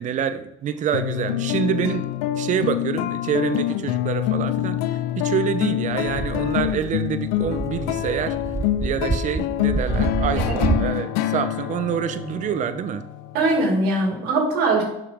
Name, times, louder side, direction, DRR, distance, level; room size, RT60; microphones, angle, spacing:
voice 1, 0.0-2.0 2.3-8.4 8.8-13.0, right 8 dB, 55° right, 11 dB, 0.7 m, -26 dB
sound 1, 0.9-13.7, left 13 dB, 85° left, 0.5 m, -26 dB
sound 2, 6.0-10.9, right 4 dB, 20° right, 0.4 m, -27 dB
voice 2, 10.3-10.7 13.3-14.8, right 2 dB, 75° right, 1 dB, 2.3 m, -21 dB
7.0 x 5.7 x 3.6 m, 0.84 s
supercardioid pair, 90°, 16 cm